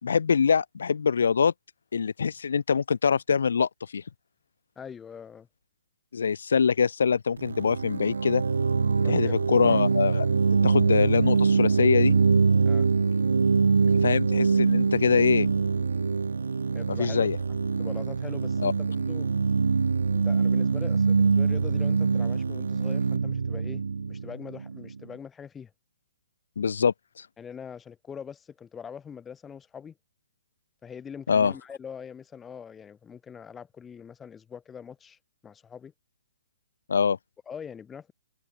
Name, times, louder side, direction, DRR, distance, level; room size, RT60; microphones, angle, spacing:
voice 1, 0.0-1.5 1.9-4.0 6.1-8.4 9.1-12.2 14.0-15.5 16.9-17.4 18.6-18.7 26.6-26.9 31.3-31.5 36.9-37.2, left 6 dB, 75° left, 1.8 m, -24 dB
voice 2, 4.8-5.5 9.0-9.8 10.6-10.7 12.6-12.9 16.7-17.3 17.8-19.3 20.1-25.7 27.4-29.9 30.8-35.2 35.4-35.9 37.5-38.1, left 7 dB, 15° left, 4.4 m, -43 dB
sound 1, 7.4-25.0, right 5 dB, 85° right, 0.3 m, -24 dB
hypercardioid pair, 140°, 0 cm